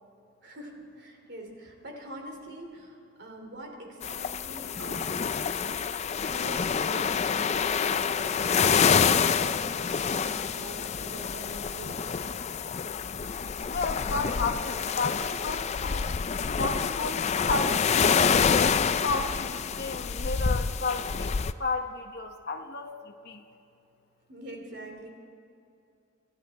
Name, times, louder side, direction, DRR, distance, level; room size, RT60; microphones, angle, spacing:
voice 1, 0.4-5.7 6.2-8.4 8.7-12.1 24.3-25.1, right 1 dB, 55° right, 2 dB, 3.0 m, -44 dB
sound 1, 4.0-21.5, left 6 dB, 35° left, 0.4 m, -27 dB
voice 2, 13.7-16.1 16.5-18.7 19.0-21.3 21.6-23.4, left 3 dB, 50° left, 4 dB, 1.0 m, -33 dB
26.5 x 13.0 x 4.2 m, 2.7 s
head